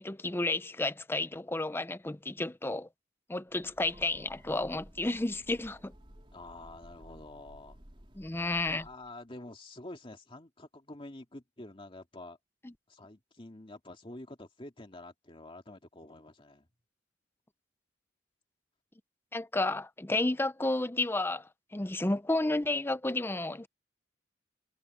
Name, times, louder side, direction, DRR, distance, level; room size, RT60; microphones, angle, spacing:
voice 1, 0.0-2.9 3.3-5.9 8.1-8.8 12.6-12.7 19.3-23.7, left 2 dB, 10° left, 0.6 m, -31 dB
Train, 3.5-9.2, equal, 30° right, 3.6 m, -55 dB
voice 2, 6.3-7.8 8.7-12.4 12.9-16.7, left 2 dB, 30° left, 2.3 m, -48 dB
head